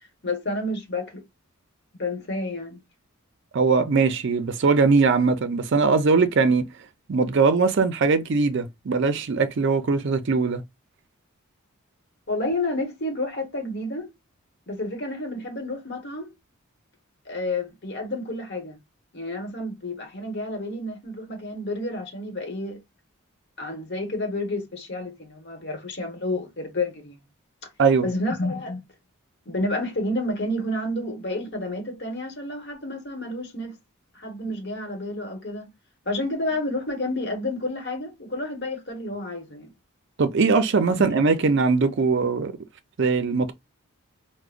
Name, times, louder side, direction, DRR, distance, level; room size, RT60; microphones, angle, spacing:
voice 1, 0.2-1.2 2.0-2.8 12.3-14.1 14.7-16.3 17.2-18.8 19.1-22.8 23.6-27.2 28.0-28.8 29.5-33.8 34.1-35.7 36.1-39.7 40.8-41.2, left 1 dB, 50° left, 1.2 m, -30 dB
voice 2, 3.5-6.6 7.1-10.6 27.8-28.1 40.2-42.5 43.0-43.5, right 4 dB, 55° right, 0.5 m, -21 dB
4.8 x 2.1 x 2.4 m
head